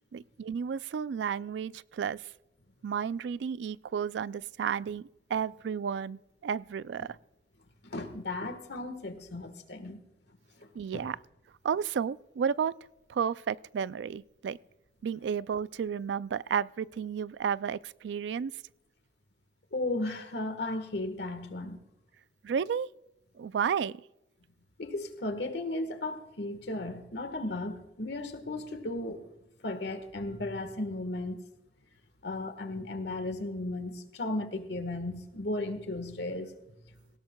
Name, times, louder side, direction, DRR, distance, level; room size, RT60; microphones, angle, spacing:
voice 1, 0.1-2.3 2.8-7.2 10.7-11.2 11.6-12.8 13.1-14.6 15.0-18.5 22.4-22.9 23.4-24.0, right 7 dB, 85° right, 0.3 m, -32 dB
voice 2, 7.8-10.0 10.6-11.1 19.7-21.8 24.8-29.3 29.6-31.4 32.2-36.8, left 2 dB, 75° left, 1.4 m, -35 dB
18.5 x 16.5 x 2.3 m
head